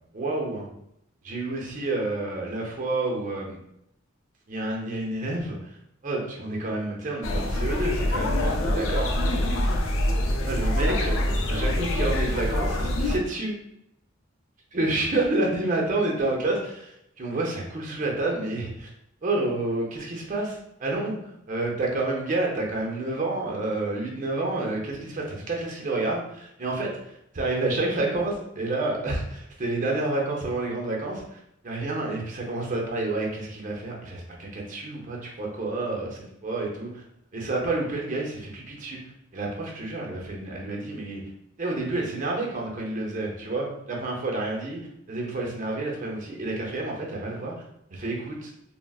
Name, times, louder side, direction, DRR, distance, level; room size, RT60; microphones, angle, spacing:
voice 1, 0.1-0.7 1.2-3.6 4.5-5.8 6.0-9.1 10.4-11.2 11.5-13.5 14.7-18.9 19.2-26.9 27.3-37.0 37.3-39.0 39.3-41.2 41.6-44.8 45.1-47.5 47.9-48.5, right 2 dB, 40° right, -1 dB, 0.6 m, -29 dB
sound 1, 7.2-13.2, left 1 dB, 85° left, 0.4 m, -25 dB
3.8 x 2.0 x 2.3 m, 0.78 s
head